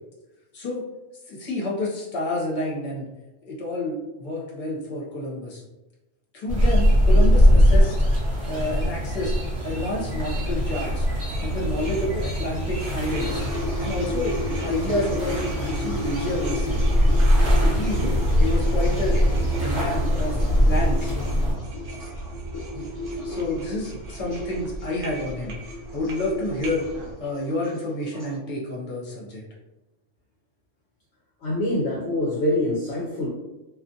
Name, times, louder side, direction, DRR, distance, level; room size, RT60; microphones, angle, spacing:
voice 1, 1.3-3.1 3.5-5.6 6.3-8.0 8.4-9.3 9.6-11.1 11.4-13.4 13.8-14.3 14.6-16.8 17.6-18.1 18.4-19.2 19.6-21.1 22.7-22.9 23.2-25.5 25.9-26.8 27.2-29.4, left 1 dB, 40° left, -4 dB, 0.9 m, -29 dB
sound 1, 6.5-21.5, equal, 40° right, 0.9 m, -22 dB
sound 2, 10.6-27.1, right 1 dB, 70° right, 0.8 m, -35 dB
sound 3, 12.7-28.4, left 1 dB, 25° left, 0.5 m, -35 dB
voice 2, 31.4-33.3, left 1 dB, 65° left, -4 dB, 0.8 m, -25 dB
2.4 x 2.4 x 2.6 m, 1.0 s
omnidirectional pair, 1.3 m